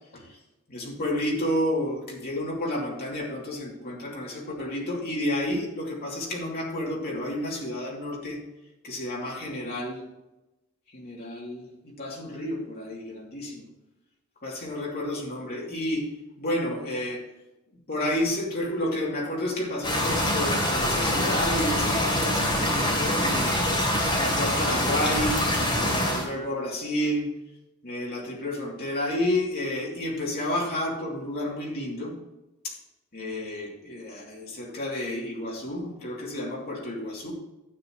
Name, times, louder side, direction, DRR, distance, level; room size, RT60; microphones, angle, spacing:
voice 1, 0.7-8.4 8.8-10.1 10.9-13.6 14.4-16.1 16.4-17.2 17.9-23.5 24.2-25.4 25.8-27.3 27.8-32.2 32.6-32.8 33.1-37.3, left 1 dB, 45° left, -3 dB, 2.7 m, -30 dB
sound 1, 19.8-26.3, left 1 dB, 20° left, 3.0 m, -25 dB
12.5 x 8.8 x 3.1 m, 0.97 s
head